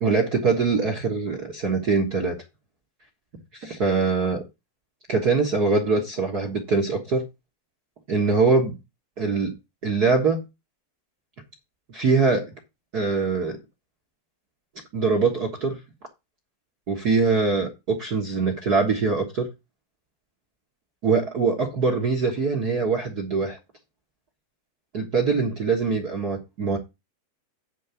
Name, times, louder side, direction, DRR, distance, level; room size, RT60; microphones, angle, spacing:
voice 1, 0.0-2.4 3.6-4.4 5.1-7.2 8.1-8.8 9.2-9.5 9.8-10.4 11.9-12.5 12.9-13.6 14.9-15.8 16.9-19.5 21.0-23.6 24.9-26.8, right 4 dB, 55° right, 1.0 m, -23 dB
9.9 x 3.9 x 7.0 m
omnidirectional pair, 4.1 m